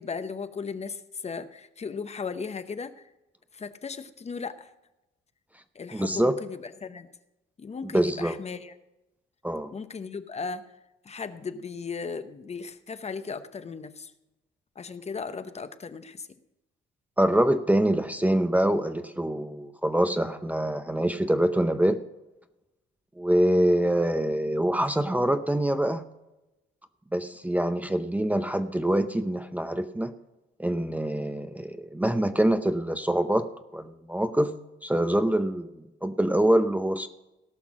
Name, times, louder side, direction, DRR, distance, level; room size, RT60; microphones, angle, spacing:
voice 1, 0.0-2.9 3.5-4.7 5.7-7.1 7.6-8.7 9.7-10.6 11.0-14.1 14.8-16.3, left 5 dB, 35° left, 11 dB, 0.8 m, -36 dB
voice 2, 5.9-6.3 7.9-8.3 9.4-9.7 17.2-22.0 23.2-26.1 27.1-30.1 30.6-33.5 33.7-34.5 34.8-37.1, right 1 dB, 10° right, 10 dB, 0.7 m, -25 dB
17.5 x 6.0 x 6.1 m, 0.97 s
cardioid pair, 90°, 20 cm